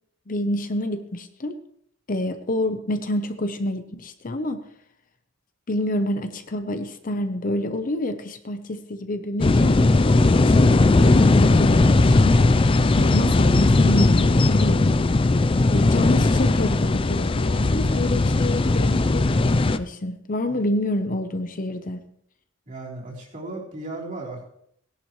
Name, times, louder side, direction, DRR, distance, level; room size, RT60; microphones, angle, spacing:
voice 1, 0.3-1.6 2.1-4.6 5.7-9.8 10.3-12.5 12.9-15.0 15.7-22.0, left 1 dB, 40° left, 8 dB, 0.8 m, -28 dB
sound 1, 9.4-19.8, left 2 dB, 25° left, 0.4 m, -18 dB
voice 2, 22.7-24.4, right 2 dB, 40° right, -4 dB, 3.6 m, -36 dB
18.0 x 11.0 x 3.1 m, 0.70 s
head